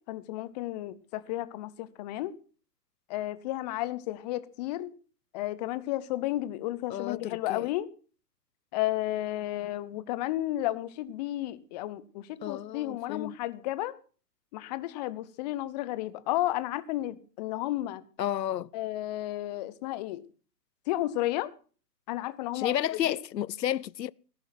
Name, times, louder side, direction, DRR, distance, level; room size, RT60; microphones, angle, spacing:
voice 1, 0.1-2.3 3.1-4.9 5.3-7.9 8.7-13.9 14.5-18.0 18.7-20.2 20.9-21.5 22.1-22.8 23.1-23.2, left 15 dB, 25° left, 0.9 m, -32 dB
voice 2, 6.9-7.7 12.4-13.4 18.2-18.7 22.5-24.1, left 11 dB, 80° left, 0.6 m, -31 dB
16.5 x 11.5 x 5.9 m
hypercardioid pair, 130°, 49 cm